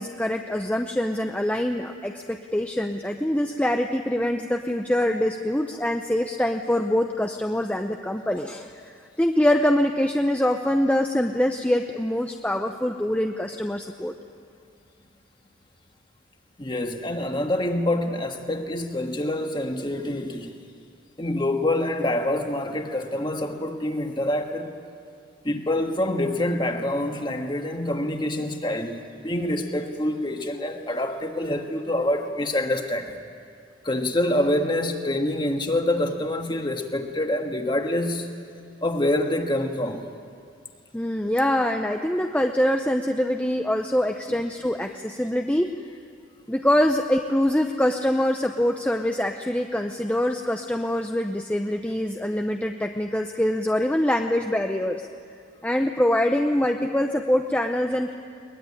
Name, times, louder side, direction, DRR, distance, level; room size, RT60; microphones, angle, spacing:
voice 1, 0.0-14.1 40.9-45.7 46.5-55.1 55.6-58.1, left 1 dB, 5° left, 4 dB, 0.7 m, -24 dB
voice 2, 16.6-20.5 21.2-24.7 25.4-33.2 33.8-38.3 38.8-40.1, left 1 dB, 20° left, 4 dB, 1.6 m, -26 dB
22.0 x 21.0 x 9.7 m, 2.3 s
head